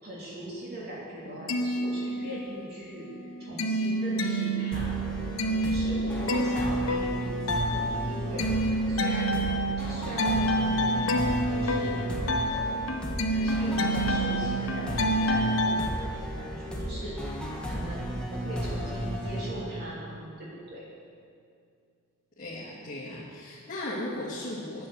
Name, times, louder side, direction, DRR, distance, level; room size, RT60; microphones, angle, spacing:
voice 1, 0.0-5.1 5.6-12.2 12.5-12.8 13.3-20.8, right 1 dB, 50° right, -6 dB, 3.2 m, -40 dB
sound 1, 1.3-2.7 3.0-15.9, right 1 dB, 85° left, 0.9 m, -28 dB
sound 2, 4.7-20.2, equal, 5° left, 1.6 m, -34 dB
voice 2, 22.4-24.9, left 1 dB, 40° left, -9 dB, 2.2 m, -36 dB
10.5 x 7.9 x 6.9 m, 2.3 s
head